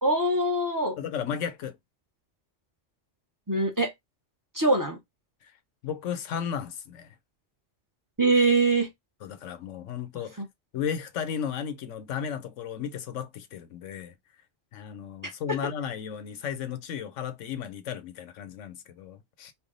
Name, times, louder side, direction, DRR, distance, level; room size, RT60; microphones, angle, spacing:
voice 1, 0.0-1.0 3.5-3.9 4.5-5.0 8.2-8.9 15.2-15.6, right 2 dB, 20° right, 0.7 m, -23 dB
voice 2, 1.0-1.8 5.4-5.5 5.8-7.1 9.2-10.4 10.7-14.1 14.7-19.5, left 8 dB, 85° left, 1.0 m, -34 dB
3.4 x 2.2 x 3.7 m
omnidirectional pair, 1.2 m